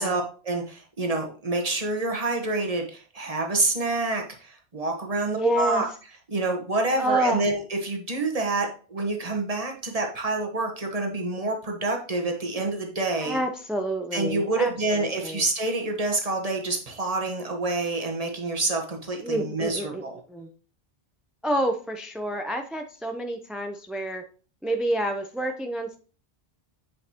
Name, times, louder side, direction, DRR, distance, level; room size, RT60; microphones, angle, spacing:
voice 1, 0.0-5.9 6.3-13.4 14.1-20.2, right 2 dB, 35° right, 2 dB, 1.3 m, -27 dB
voice 2, 5.2-5.9 7.0-7.5 13.2-15.4 19.2-20.5 21.4-24.2 24.6-26.0, right 1 dB, ahead, 5 dB, 0.4 m, -28 dB
8.3 x 5.3 x 2.9 m, 0.38 s
omnidirectional pair, 1.1 m